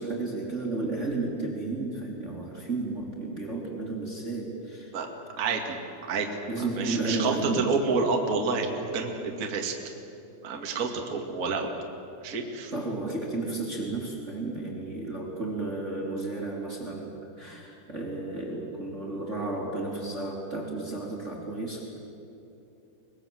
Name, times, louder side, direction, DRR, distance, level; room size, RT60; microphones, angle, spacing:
voice 1, 0.0-4.9 6.5-7.7 12.7-22.0, right 2 dB, 20° right, -2 dB, 2.5 m, -33 dB
voice 2, 5.4-5.8 6.1-6.3 6.6-9.7 10.4-11.7 12.2-12.7, right 4 dB, 45° right, 1 dB, 1.1 m, -29 dB
24.5 x 21.0 x 7.8 m, 2.9 s
omnidirectional pair, 5.5 m